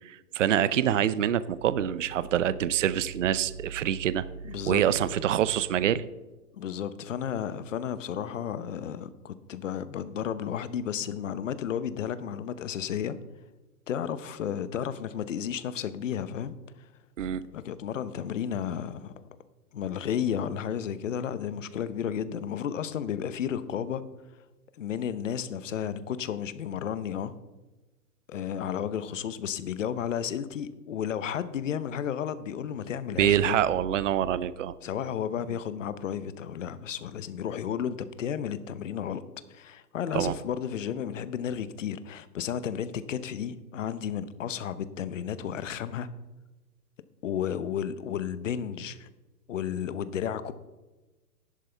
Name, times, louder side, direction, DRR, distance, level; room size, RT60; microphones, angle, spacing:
voice 1, 0.0-4.2 4.7-6.0 17.2-17.4 33.2-34.7 40.1-40.3, right 10 dB, 50° right, 17 dB, 0.6 m, -25 dB
voice 2, 4.4-4.8 6.5-13.2 13.9-16.5 17.5-19.3 19.7-24.0 24.8-27.3 28.3-33.6 34.8-39.2 39.5-46.1 47.2-49.1 49.5-50.5, left 8 dB, 50° left, 14 dB, 0.8 m, -33 dB
12.0 x 11.0 x 3.4 m, 1.1 s
hypercardioid pair, 165°, 48 cm